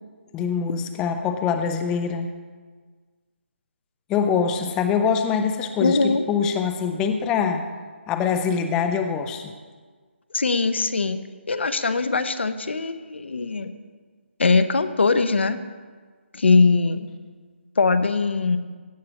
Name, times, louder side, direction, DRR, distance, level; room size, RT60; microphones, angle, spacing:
voice 1, 0.3-2.3 4.1-7.6 8.1-9.4, left 6 dB, 10° left, 7 dB, 0.4 m, -24 dB
voice 2, 5.8-6.2 10.3-11.2 11.5-13.7 14.4-15.6 16.3-17.1 17.8-18.6, left 4 dB, 65° left, 11 dB, 0.7 m, -21 dB
16.5 x 8.4 x 2.9 m, 1.5 s
figure-of-eight pair, 150°, 7 cm